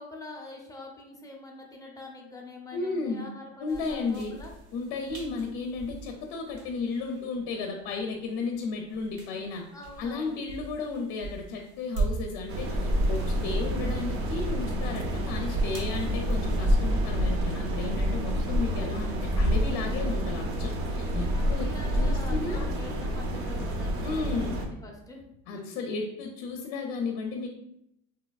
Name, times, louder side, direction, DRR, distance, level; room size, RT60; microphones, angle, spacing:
voice 1, 0.0-4.5 9.7-10.4 21.3-25.2 25.5-25.7, left 2 dB, 10° left, -1 dB, 0.5 m, -44 dB
voice 2, 2.7-3.3 3.6-4.4 4.7-9.7 10.0-21.7 21.9-22.6 24.0-24.6 25.5-27.5, left 4 dB, 65° left, 2 dB, 0.6 m, -34 dB
sound 1, 3.7-16.9, right 3 dB, 90° right, 1.0 m, -39 dB
sound 2, 12.5-24.7, equal, 40° right, 0.5 m, -28 dB
3.2 x 2.9 x 2.2 m, 0.78 s
cardioid pair, 130°, 34 cm